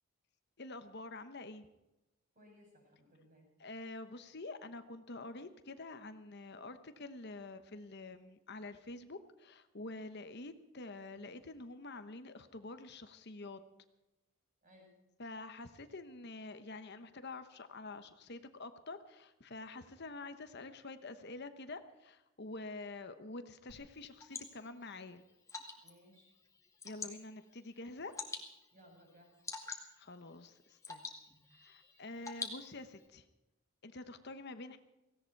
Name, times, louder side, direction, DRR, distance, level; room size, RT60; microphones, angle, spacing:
voice 1, 0.6-1.7 3.6-13.6 15.2-25.2 26.8-28.1 30.0-31.1 31.6-33.2 33.8-34.8, left 2 dB, 50° left, 9 dB, 1.0 m, -47 dB
voice 2, 2.3-3.5 14.6-14.9 25.8-26.3 28.7-29.4, equal, 40° right, 1 dB, 7.3 m, -62 dB
Water / Drip, 23.7-33.1, left 4 dB, 15° left, 2.1 m, -49 dB
17.5 x 17.0 x 4.7 m, 1.0 s
head